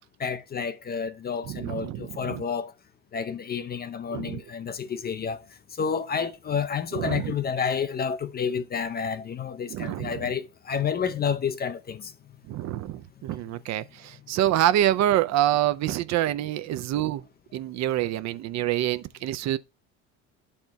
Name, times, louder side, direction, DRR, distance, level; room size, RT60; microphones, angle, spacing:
voice 1, 0.2-2.7 3.1-12.1 12.7-12.8, left 6 dB, 25° left, 0.4 m, -30 dB
voice 2, 1.5-2.4 4.1-4.4 6.9-7.3 9.7-10.3 12.5-17.3 17.5-19.6, right 12 dB, 45° right, 0.4 m, -26 dB
12.5 x 4.3 x 2.2 m
hypercardioid pair, 65°, 40 cm